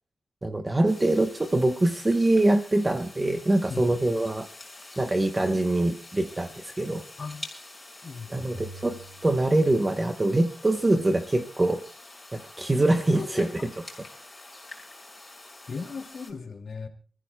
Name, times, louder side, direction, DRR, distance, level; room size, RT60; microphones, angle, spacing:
voice 1, 0.4-4.5 5.0-7.0 8.3-9.0 9.2-11.8 12.3-13.5, right 2 dB, 20° right, 6 dB, 0.9 m, -24 dB
sound 1, 0.9-16.3, left 2 dB, 15° left, 5.4 m, -47 dB
voice 2, 8.0-8.7 13.2-13.4 15.7-16.9, left 5 dB, 55° left, 3 dB, 2.2 m, -37 dB
sound 2, 8.5-10.3, right 2 dB, 45° right, 1.9 m, -47 dB
29.0 x 14.5 x 2.2 m, 0.40 s
wide cardioid pair, 125°, 0 cm